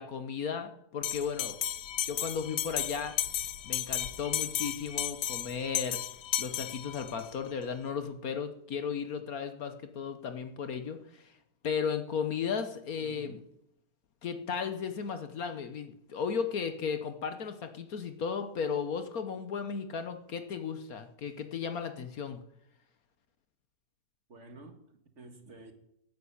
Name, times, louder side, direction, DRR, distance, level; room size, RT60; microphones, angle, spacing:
voice 1, 0.0-1.6 2.1-3.1 3.6-6.0 6.4-11.3 11.6-13.4 14.2-22.4, left 6 dB, 60° left, 1.4 m, -35 dB
Bell, 1.0-7.3, left 11 dB, 80° left, 1.4 m, -34 dB
voice 2, 13.0-13.5 24.3-25.7, right 2 dB, 45° right, 1.9 m, -50 dB
12.0 x 9.5 x 8.6 m
omnidirectional pair, 1.9 m